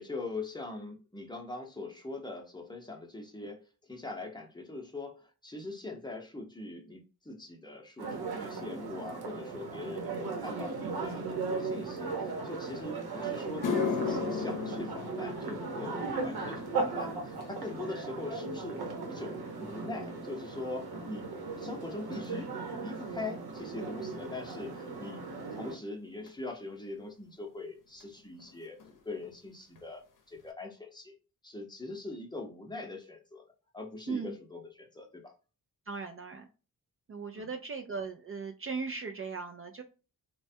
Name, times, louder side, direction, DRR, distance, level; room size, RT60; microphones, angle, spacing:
voice 1, 0.0-18.8 19.1-22.5 22.8-25.3 25.5-28.8 29.0-31.2 31.4-33.4 33.7-35.3 37.3-37.5, left 2 dB, 10° left, 2 dB, 0.8 m, -42 dB
sound 1, 8.0-25.8, right 4 dB, 80° right, 0.9 m, -37 dB
sound 2, 12.9-13.0 13.4-21.9 22.2-22.7 23.4-23.5 26.3-26.4 28.0-28.1 28.3-28.5 28.8-29.3 29.8-29.9 30.4-30.5, left 5 dB, 60° left, 0.7 m, -38 dB
voice 2, 35.9-36.5 37.1-39.8, right 4 dB, 40° right, 5 dB, 0.4 m, -38 dB
3.1 x 2.2 x 2.6 m, 0.33 s
cardioid pair, 75°, 37 cm